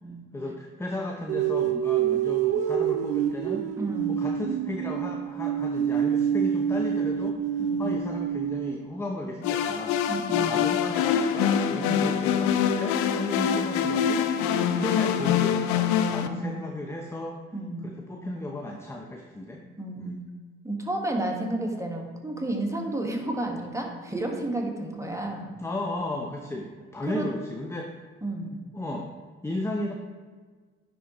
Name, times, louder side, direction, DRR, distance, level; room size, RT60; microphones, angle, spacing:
voice 1, 0.3-3.7 4.1-10.0 10.3-14.3 14.8-17.4 17.8-19.6 20.0-20.2 25.6-27.9 28.7-29.1 29.4-29.9, left 1 dB, 10° left, 1 dB, 0.7 m, -35 dB
sound 1, 1.3-8.9, right 9 dB, 55° right, 0.5 m, -27 dB
voice 2, 3.8-4.2 7.6-8.0 10.1-10.7 11.7-12.1 14.6-14.9 16.2-16.6 17.5-17.9 19.8-20.2 20.6-25.5 27.1-27.3 28.2-28.6, right 1 dB, 10° right, 1 dB, 1.5 m, -32 dB
sound 2, 9.4-16.3, left 8 dB, 70° left, 0.5 m, -24 dB
9.9 x 3.7 x 3.0 m, 1.5 s
hypercardioid pair, 50°, 30 cm